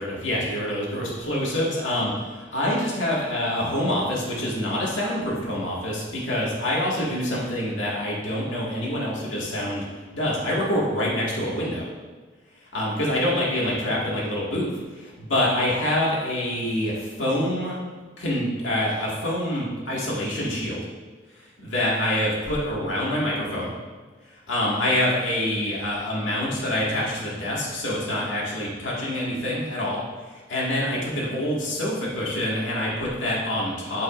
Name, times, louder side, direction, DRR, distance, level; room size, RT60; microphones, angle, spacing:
voice 1, 0.0-9.8 10.1-11.9 12.7-17.8 18.2-20.8 21.4-23.7 24.3-30.0 30.3-34.0, left 1 dB, 85° left, -5 dB, 2.0 m, -26 dB
8.3 x 8.1 x 2.6 m, 1.4 s
head